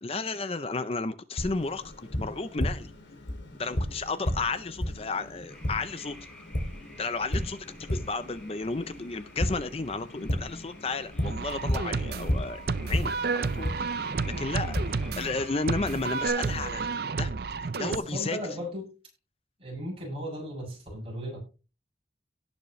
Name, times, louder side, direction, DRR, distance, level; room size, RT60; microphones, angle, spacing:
voice 1, 0.0-2.9 3.6-6.3 7.0-7.6 7.9-13.7 14.0-14.1 14.4-14.8 15.2-17.3 17.8-18.4, left 3 dB, 30° left, 0.6 m, -33 dB
Tap, 1.4-16.3, equal, 85° left, 2.7 m, -34 dB
sound 1, 5.5-16.3, left 1 dB, 5° left, 2.8 m, -51 dB
sound 2, 11.2-18.0, right 4 dB, 55° right, 0.6 m, -31 dB
voice 2, 17.8-18.9 19.6-21.4, equal, 30° right, 7.5 m, -37 dB
18.0 x 7.2 x 3.2 m
head